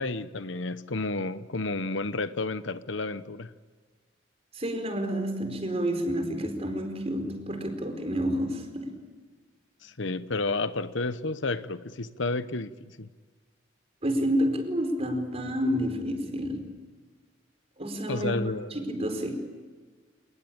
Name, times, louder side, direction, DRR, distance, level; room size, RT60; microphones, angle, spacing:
voice 1, 0.0-3.5 9.8-13.1 18.1-18.7, left 3 dB, 65° left, 1.0 m, -31 dB
voice 2, 4.5-9.0 14.0-16.7 17.8-18.4 18.7-19.4, equal, 30° right, 4.5 m, -29 dB
28.5 x 20.0 x 8.9 m
head